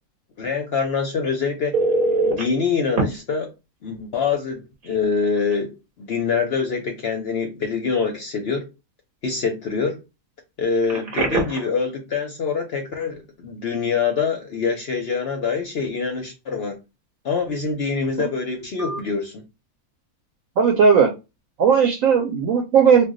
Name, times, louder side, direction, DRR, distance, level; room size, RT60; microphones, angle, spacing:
voice 1, 0.4-1.8 2.2-3.5 3.8-8.7 9.2-10.0 10.6-16.8 17.2-19.4, left 5 dB, 60° left, 0.6 m, -25 dB
Telephone, 1.7-2.4 3.0-3.1 4.8-5.0 5.4-5.5 10.8-11.7 18.8-19.0, right 3 dB, 45° right, 0.8 m, -22 dB
voice 2, 20.6-21.1 21.6-23.1, right 6 dB, 70° right, 1.0 m, -16 dB
2.4 x 2.2 x 3.6 m
omnidirectional pair, 1.6 m